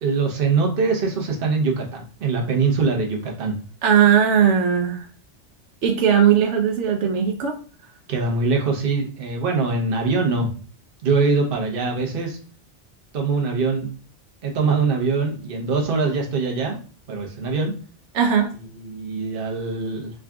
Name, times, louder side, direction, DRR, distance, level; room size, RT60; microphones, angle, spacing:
voice 1, 0.0-3.5 8.1-10.5 11.0-12.4 13.1-13.9 14.4-16.8 17.1-17.7 18.6-20.1, right 4 dB, 55° right, 0 dB, 1.0 m, -23 dB
voice 2, 3.8-5.0 5.8-7.6 18.1-18.5, right 8 dB, 80° right, 3 dB, 0.9 m, -18 dB
3.7 x 2.3 x 3.5 m, 0.41 s
omnidirectional pair, 1.2 m